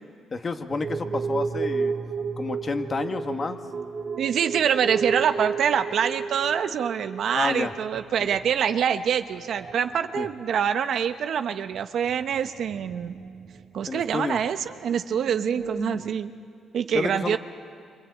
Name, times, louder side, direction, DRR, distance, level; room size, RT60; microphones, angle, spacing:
voice 1, 0.3-1.9 2.4-3.6 7.3-7.7 8.2-8.4 10.1-10.3 13.9-14.4 15.9-16.1 16.9-17.4, left 4 dB, 35° left, 6 dB, 1.8 m, -29 dB
sound 1, 0.7-9.2 9.5-10.1 10.4-10.5 11.0-11.1 12.1-14.2 14.6-14.7 14.9-15.8, right 4 dB, 45° right, 2.2 m, -33 dB
voice 2, 4.2-13.2 13.7-16.3 16.7-17.4, right 8 dB, 65° right, 9 dB, 0.9 m, -25 dB
26.5 x 26.0 x 8.5 m, 2.2 s
cardioid pair, 90°, 0 cm